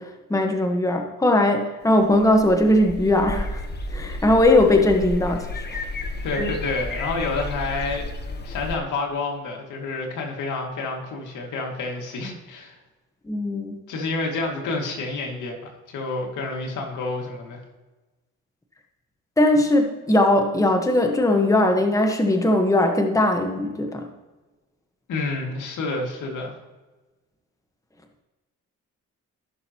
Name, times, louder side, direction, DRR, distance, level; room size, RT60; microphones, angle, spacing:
voice 1, 0.0-3.6 3.9-5.9 13.3-13.8 19.4-24.1, left 1 dB, 10° left, 4 dB, 1.2 m, -20 dB
sound 1, 2.0-8.8, left 2 dB, 35° left, 1.2 m, -32 dB
voice 2, 6.2-8.1 8.4-12.8 13.9-15.6 15.9-17.6 25.1-26.5, left 3 dB, 80° left, 1 dB, 2.3 m, -29 dB
16.0 x 6.4 x 3.0 m, 1.2 s
cardioid pair, 90°, 30 cm